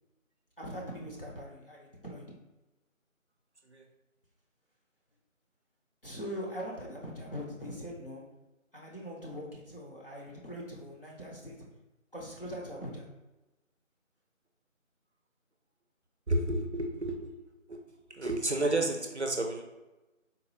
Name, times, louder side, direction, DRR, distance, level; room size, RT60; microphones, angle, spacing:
voice 1, 0.6-2.2 6.0-8.2 8.7-11.6 12.1-13.1, equal, 45° left, -3 dB, 0.7 m, -41 dB
voice 2, 16.3-17.3 17.7-17.8 18.1-19.6, right 2 dB, 55° right, 4 dB, 0.5 m, -31 dB
3.9 x 2.3 x 2.8 m, 1.0 s
figure-of-eight pair, 170°, 41 cm